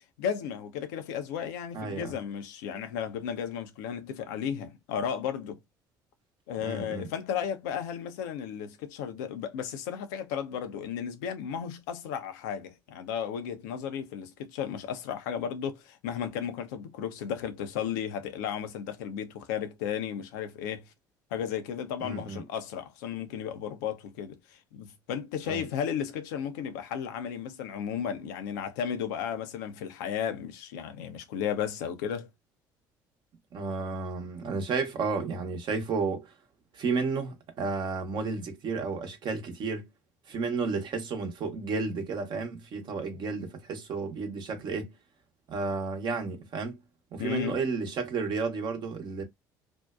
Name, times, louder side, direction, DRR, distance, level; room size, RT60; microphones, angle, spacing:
voice 1, 0.2-5.6 6.5-20.9 21.3-32.3 47.2-47.6, left 8 dB, 75° left, 0.5 m, -34 dB
voice 2, 1.7-2.1 6.6-7.1 22.0-22.4 25.5-25.6 33.5-36.3 36.7-39.9 40.3-44.9 45.5-46.8 47.1-49.2, right 4 dB, 50° right, 0.9 m, -32 dB
2.6 x 2.1 x 2.3 m
hypercardioid pair, 60°, 10 cm